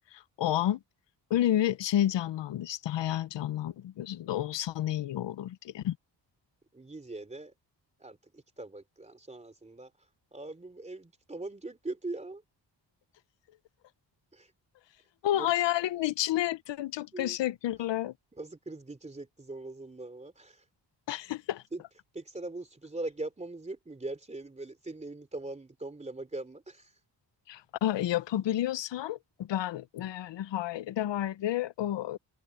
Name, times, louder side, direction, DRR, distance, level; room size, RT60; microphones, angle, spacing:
voice 1, 0.1-0.8 1.3-6.0 15.2-18.1 21.1-21.6 27.5-32.2, left 12 dB, 75° left, 0.7 m, -30 dB
voice 2, 6.7-7.5 8.0-8.2 8.6-9.9 10.3-12.4 14.3-14.5 15.3-15.5 17.1-17.4 18.4-20.5 21.7-21.8 22.1-26.8, right 2 dB, 15° right, 3.1 m, -41 dB
open air
wide cardioid pair, 165°, 43 cm